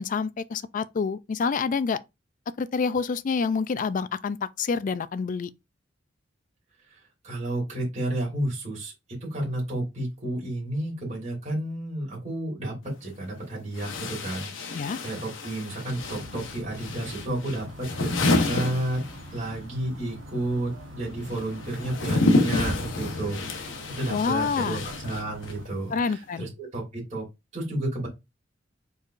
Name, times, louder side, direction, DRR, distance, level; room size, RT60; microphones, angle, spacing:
voice 1, 0.0-2.0 2.6-5.5 14.7-15.0 24.1-24.8 25.9-26.5, left 5 dB, 45° left, 0.4 m, -27 dB
voice 2, 7.2-8.9 9.3-19.0 19.3-27.2 27.5-28.1, right 1 dB, 40° right, 2.7 m, -31 dB
sound 1, 12.8-12.9 13.7-19.6 19.8-25.7, left 2 dB, 80° left, 1.0 m, -29 dB
sound 2, 15.9-25.6, equal, 75° right, 1.1 m, -44 dB
4.7 x 4.5 x 2.5 m
head